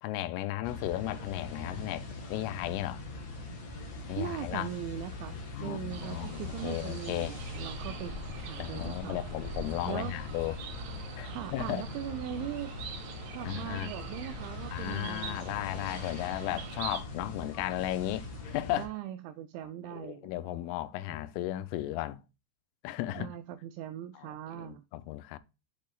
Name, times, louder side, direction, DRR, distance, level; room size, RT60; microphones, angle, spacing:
voice 1, 0.0-3.0 4.1-4.7 5.5-7.3 8.6-10.6 11.2-11.8 13.4-13.9 14.7-18.9 19.9-22.2 22.8-23.3 24.2-25.4, left 14 dB, 85° left, 3.2 m, -35 dB
sound 1, 0.6-18.9, left 3 dB, 60° left, 1.9 m, -42 dB
voice 2, 4.2-8.1 8.5-9.2 9.9-10.1 11.2-12.7 13.2-15.5 18.7-20.3 21.1-21.2 23.2-24.8, right 12 dB, 90° right, 2.6 m, -40 dB
sound 2, 5.9-17.0, right 7 dB, 70° right, 2.7 m, -45 dB
8.1 x 6.6 x 2.3 m
omnidirectional pair, 5.8 m